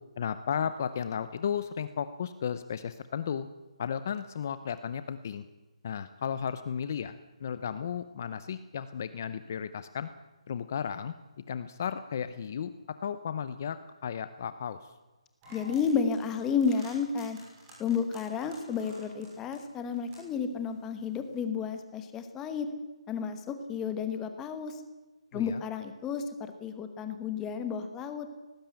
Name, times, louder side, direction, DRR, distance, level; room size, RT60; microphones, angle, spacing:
voice 1, 0.2-3.5 3.8-5.4 5.8-10.1 10.5-11.1 11.5-14.9 25.3-25.6, left 7 dB, 25° left, 13 dB, 0.7 m, -34 dB
sound 1, 15.4-21.4, right 1 dB, 15° right, 6.1 m, -53 dB
voice 2, 15.5-17.4 17.8-22.7 23.1-24.7 25.3-28.3, left 6 dB, 5° left, 8 dB, 1.1 m, -32 dB
18.5 x 16.0 x 9.1 m, 1.1 s
hypercardioid pair, 180°, 3 cm